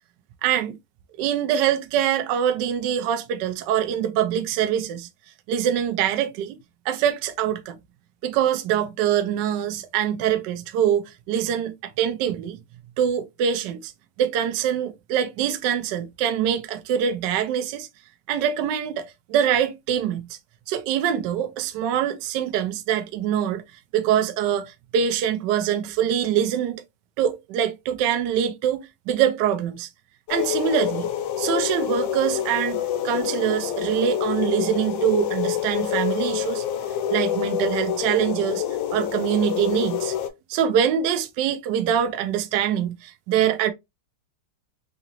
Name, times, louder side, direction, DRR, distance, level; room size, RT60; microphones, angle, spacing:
voice 1, 0.4-0.8 1.2-5.1 5.5-6.6 6.8-7.8 8.2-12.6 13.0-13.9 14.2-17.9 18.3-20.4 20.7-23.6 23.9-26.8 27.2-29.9 30.3-31.1 31.4-36.6 37.1-38.6 38.9-40.1 40.5-43.7, right 9 dB, 75° right, 1.0 m, -24 dB
sound 1, 30.3-40.3, left 10 dB, 70° left, 1.2 m, -27 dB
3.8 x 2.8 x 2.8 m
omnidirectional pair, 2.3 m